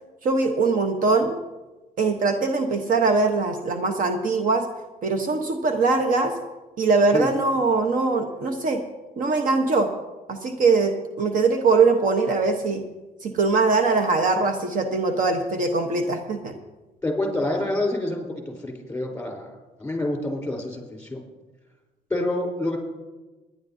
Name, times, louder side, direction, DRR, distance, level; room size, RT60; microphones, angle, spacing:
voice 1, 0.2-1.4 2.0-4.7 5.0-6.4 6.8-8.8 9.2-9.9 10.3-12.8 13.2-16.5, right 4 dB, 55° right, 6 dB, 1.0 m, -22 dB
voice 2, 17.0-21.2 22.1-22.8, left 1 dB, 10° left, 1 dB, 3.6 m, -27 dB
23.5 x 10.5 x 2.7 m, 1.2 s
cardioid pair, 110°, 17 cm